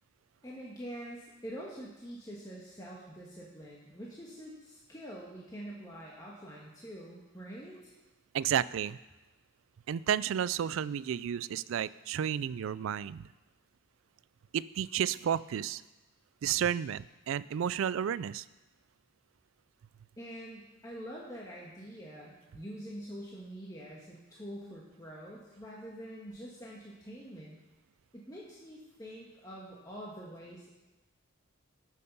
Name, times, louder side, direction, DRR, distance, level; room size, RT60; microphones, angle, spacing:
voice 1, 0.4-7.9 20.2-27.6 28.1-30.7, equal, 15° left, -5 dB, 1.4 m, -45 dB
voice 2, 8.3-9.0 9.9-13.3 14.5-15.8 16.4-18.4, right 9 dB, 75° right, 18 dB, 0.3 m, -32 dB
14.0 x 6.6 x 5.4 m, 1.1 s
head